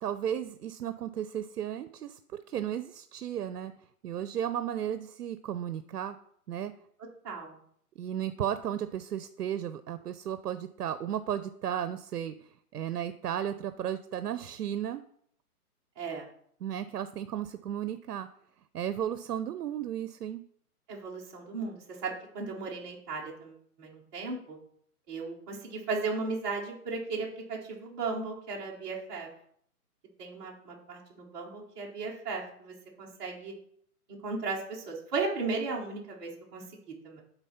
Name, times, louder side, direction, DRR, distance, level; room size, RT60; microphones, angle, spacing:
voice 1, 0.0-3.7 4.0-6.2 6.5-6.7 8.0-15.0 16.6-18.3 18.7-20.4, right 10 dB, 85° right, 12 dB, 0.6 m, -34 dB
voice 2, 7.2-7.6 16.0-16.3 20.9-24.6 25.1-29.3 30.2-33.5 34.2-37.2, right 4 dB, 15° right, -5 dB, 1.0 m, -36 dB
8.1 x 4.0 x 5.6 m, 0.65 s
hypercardioid pair, 160°, 46 cm